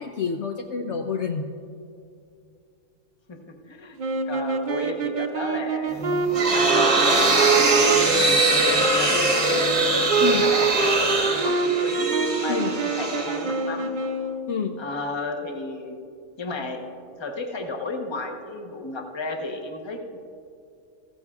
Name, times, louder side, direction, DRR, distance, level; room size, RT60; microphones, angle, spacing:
voice 1, 0.0-1.5 10.2-10.5 12.5-12.7 14.5-14.7, left 5 dB, 60° left, 3 dB, 0.8 m, -27 dB
voice 2, 3.3-4.0 4.2-7.6 7.9-9.7 10.1-13.9 14.8-16.0 16.4-16.8 17.2-20.2, left 2 dB, 20° left, 2 dB, 0.9 m, -33 dB
sound 1, 4.0-14.5, right 4 dB, 50° right, 0.6 m, -25 dB
sound 2, 6.0-13.9, right 2 dB, 25° right, 1.0 m, -23 dB
15.5 x 14.5 x 2.4 m, 2.5 s
omnidirectional pair, 1.5 m